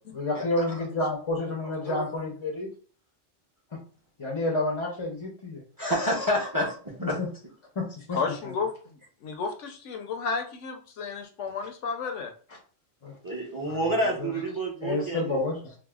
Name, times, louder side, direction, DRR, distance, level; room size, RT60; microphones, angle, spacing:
voice 1, 0.1-2.7 3.7-3.8 4.2-5.6 7.0-7.3 7.8-8.2 13.0-13.2 13.7-14.3 14.8-15.8, left 2 dB, 40° left, 0 dB, 0.4 m, -30 dB
voice 2, 5.8-7.2 13.2-15.4, equal, 20° right, -2 dB, 0.6 m, -28 dB
voice 3, 8.1-8.7 9.2-12.3, left 5 dB, 70° left, 5 dB, 0.9 m, -32 dB
4.7 x 2.1 x 2.3 m, 0.41 s
omnidirectional pair, 1.3 m